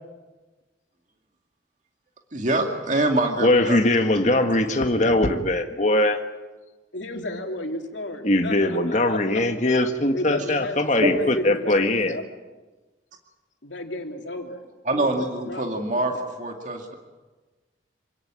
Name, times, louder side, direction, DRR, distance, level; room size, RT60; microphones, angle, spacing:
voice 1, 2.3-3.8 4.4-4.6 10.4-10.5 11.0-11.1 14.9-17.0, right 2 dB, 40° right, 3 dB, 2.3 m, -25 dB
voice 2, 3.4-6.2 8.2-12.2, left 1 dB, 40° left, 5 dB, 1.8 m, -21 dB
voice 3, 6.9-9.2 10.1-12.2 13.6-14.6 14.9-16.1, left 1 dB, 80° left, 3 dB, 3.2 m, -33 dB
27.5 x 17.5 x 8.9 m, 1.2 s
head